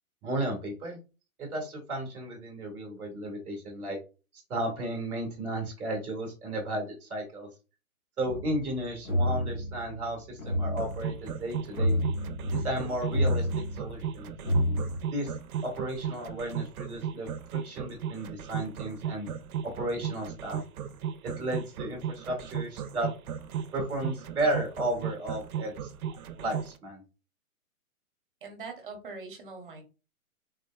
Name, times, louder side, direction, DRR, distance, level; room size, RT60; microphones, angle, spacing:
voice 1, 0.2-1.0 1.4-4.0 4.5-7.5 8.2-12.0 12.5-13.5 13.8-14.3 15.1-15.3 15.6-19.3 19.8-20.6 21.4-23.1 23.7-25.9 26.4-27.0, right 1 dB, ahead, -20 dB, 0.5 m, -34 dB
sound 1, 8.3-15.0, equal, 65° left, 1.1 m, -30 dB
sound 2, 10.8-26.7, right 8 dB, 75° right, 0.5 m, -35 dB
voice 2, 28.4-29.8, right 4 dB, 35° right, 3 dB, 0.8 m, -42 dB
3.5 x 2.1 x 2.2 m, 0.31 s
hypercardioid pair, 165°, 43 cm